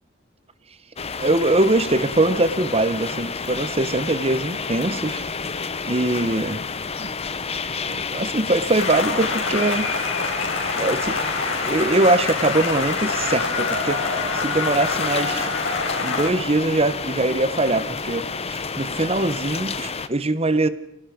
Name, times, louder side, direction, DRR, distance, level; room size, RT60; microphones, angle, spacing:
sound 1, 1.0-20.1, left 5 dB, 30° left, 0.9 m, -30 dB
voice 1, 1.2-5.2 5.9-6.6 7.0-7.1 7.8-9.9 10.8-14.0 14.3-15.5 16.0-20.7, right 2 dB, 30° right, 14 dB, 1.2 m, -22 dB
sound 2, 8.8-16.3, left 4 dB, 80° left, 5.9 m, -26 dB
28.5 x 18.0 x 5.2 m, 0.77 s
head